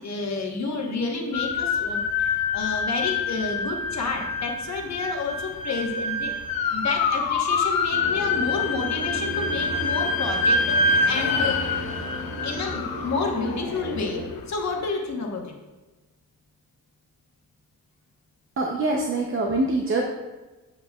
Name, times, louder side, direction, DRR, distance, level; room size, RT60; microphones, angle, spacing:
voice 1, 0.0-6.3 6.7-11.6 12.4-15.5, left 4 dB, 50° left, 1 dB, 1.2 m, -30 dB
sound 1, 1.3-14.4, left 3 dB, 85° left, 0.8 m, -26 dB
sound 2, 7.9-14.3, right 1 dB, 75° right, 2.3 m, -35 dB
voice 2, 18.6-20.0, right 2 dB, 35° right, 1 dB, 0.6 m, -24 dB
8.0 x 7.5 x 2.3 m, 1.2 s
wide cardioid pair, 150°, 35 cm